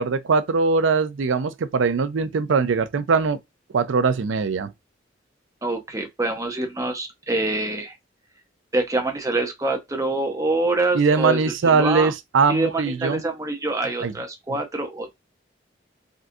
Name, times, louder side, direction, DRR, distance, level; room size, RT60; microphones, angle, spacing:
voice 1, 0.0-3.4 3.7-4.7 10.9-13.2 14.0-14.1 14.5-14.6, right 4 dB, 80° right, 0.4 m, -21 dB
voice 2, 5.6-7.9 8.7-12.1 12.5-15.2, right 2 dB, 15° right, 0.6 m, -25 dB
3.7 x 2.3 x 2.6 m
head